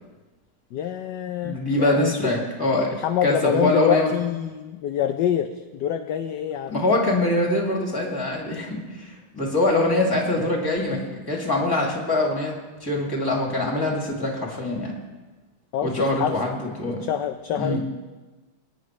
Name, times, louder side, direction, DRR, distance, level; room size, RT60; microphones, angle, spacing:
voice 1, 0.7-2.3 2.9-6.8 15.7-16.7 17.0-17.8, left 10 dB, 70° left, 7 dB, 1.1 m, -26 dB
voice 2, 1.4-4.1 6.7-14.9 15.8-17.0 17.6-17.8, left 1 dB, 10° left, -2 dB, 2.2 m, -24 dB
22.0 x 10.0 x 3.2 m, 1.2 s
omnidirectional pair, 2.2 m